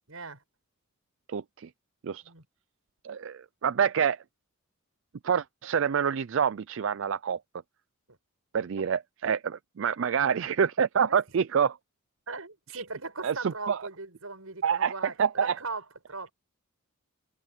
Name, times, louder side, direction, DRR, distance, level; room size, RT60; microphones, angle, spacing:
voice 1, 0.1-0.4 2.2-2.4 8.1-8.2 11.0-11.2 12.3-16.3, right 3 dB, 90° right, 6.8 m, -39 dB
voice 2, 1.3-1.7 2.0-2.2 3.0-4.2 5.2-7.4 8.5-11.8 12.7-12.8 13.2-13.8 14.6-15.6, right 7 dB, 60° right, 0.4 m, -27 dB
head